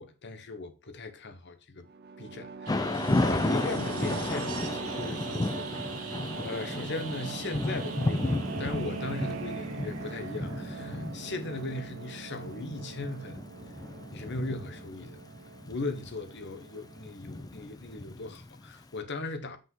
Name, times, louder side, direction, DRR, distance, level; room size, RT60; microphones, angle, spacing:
voice 1, 0.0-1.9 2.2-13.4 14.1-15.2 15.7-19.6, left 3 dB, 50° left, 1.1 m, -38 dB
sound 1, 1.9-17.3, right 4 dB, 45° right, 0.5 m, -41 dB
Thunder / Rain, 2.7-18.7, left 2 dB, 15° left, 0.4 m, -33 dB
Industrial Saw, 2.7-11.3 13.7-13.8, right 7 dB, 80° right, 1.3 m, -45 dB
6.0 x 5.4 x 5.4 m
head